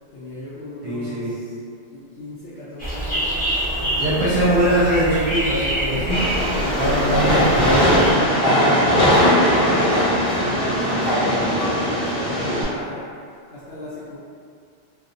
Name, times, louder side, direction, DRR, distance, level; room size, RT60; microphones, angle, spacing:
voice 1, 0.1-1.5 1.9-3.3 3.9-4.7 7.0-8.4 8.8-13.1 13.5-14.2, left 1 dB, 80° left, -10 dB, 0.9 m, -32 dB
voice 2, 0.8-1.4 3.8-8.1, right 1 dB, 50° right, -8 dB, 0.6 m, -22 dB
sound 1, 2.8-8.1, right 1 dB, 15° left, 0.3 m, -26 dB
Train, 6.1-12.6, equal, 55° left, 1.0 m, -19 dB
2.9 x 2.0 x 2.5 m, 2.3 s
omnidirectional pair, 1.2 m